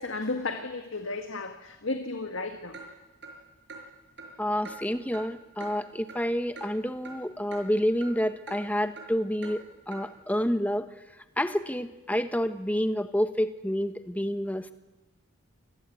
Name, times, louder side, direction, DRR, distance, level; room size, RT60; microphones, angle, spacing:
voice 1, 0.0-2.8, left 3 dB, 70° left, 6 dB, 1.8 m, -33 dB
Clock, 2.7-2.9 3.2-3.3 3.7-3.8 4.2-4.3 4.6-4.8 5.1-5.2 5.6-5.7 6.1-6.2 6.6-6.7 7.0-7.2 7.5-7.6 8.0-8.1 8.5-8.6 9.0-9.1 9.4-9.5 9.9-10.0, right 3 dB, 55° right, 5.9 m, -42 dB
voice 2, 4.4-10.9 11.4-14.7, equal, 5° left, 10 dB, 1.2 m, -29 dB
27.5 x 21.0 x 8.4 m, 1.1 s
head